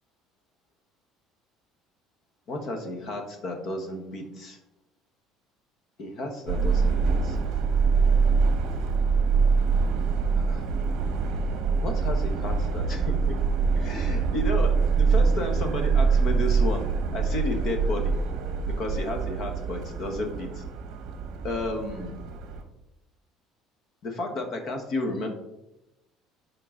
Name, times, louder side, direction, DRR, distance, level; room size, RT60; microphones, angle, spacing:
voice 1, 2.5-4.6 6.0-7.4 10.5-10.6 11.8-13.4 13.8-16.9 17.1-18.1 18.7-20.6 21.4-22.1 24.0-25.3, left 2 dB, 40° left, 4 dB, 1.2 m, -32 dB
Subway metro underground, 6.5-22.6, right 5 dB, 55° right, 0.9 m, -24 dB
10.5 x 3.9 x 3.8 m, 0.91 s
cardioid pair, 170°, 0 cm